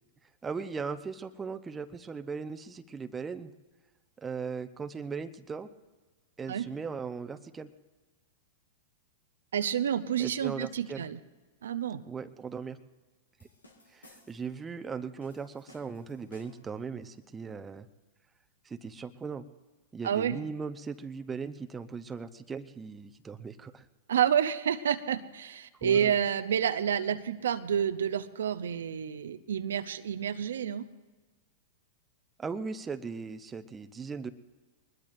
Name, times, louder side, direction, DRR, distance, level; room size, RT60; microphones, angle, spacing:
voice 1, 0.4-3.5 4.2-5.7 6.4-7.7 10.2-11.0 12.1-12.8 13.9-17.9 18.6-19.4 19.9-23.9 25.8-26.1 32.4-34.3, right 5 dB, 15° right, 9 dB, 0.7 m, -38 dB
voice 2, 9.5-11.2 11.6-12.0 20.0-20.4 24.1-30.9, right 9 dB, 75° right, 10 dB, 0.6 m, -29 dB
sound 1, 13.4-14.6 15.2-16.8, left 1 dB, 90° left, 2.0 m, -58 dB
22.5 x 20.5 x 2.6 m, 1.3 s
hypercardioid pair, 100°, 0 cm